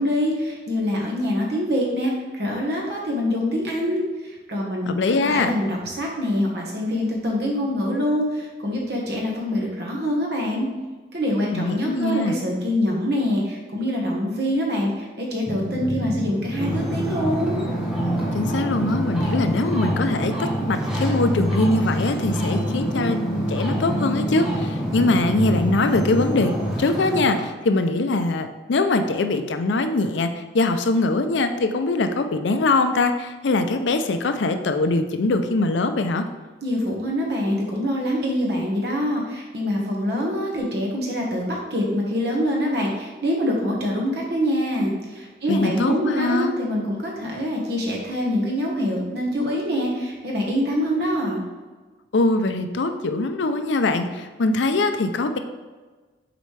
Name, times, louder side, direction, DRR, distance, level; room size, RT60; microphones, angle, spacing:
voice 1, 0.0-4.9 5.2-10.7 11.1-17.6 36.6-51.4, equal, 55° right, -2 dB, 1.4 m, -25 dB
voice 2, 4.9-5.5 11.5-12.4 18.3-23.2 23.5-26.5 26.8-36.2 45.5-46.5 52.1-55.4, left 2 dB, 75° left, 8 dB, 0.5 m, -22 dB
sound 1, 15.5-26.8, equal, 15° left, 0.5 m, -27 dB
Ocean, 16.6-27.4, right 1 dB, 5° right, 1.1 m, -29 dB
6.8 x 4.2 x 3.3 m, 1.3 s
head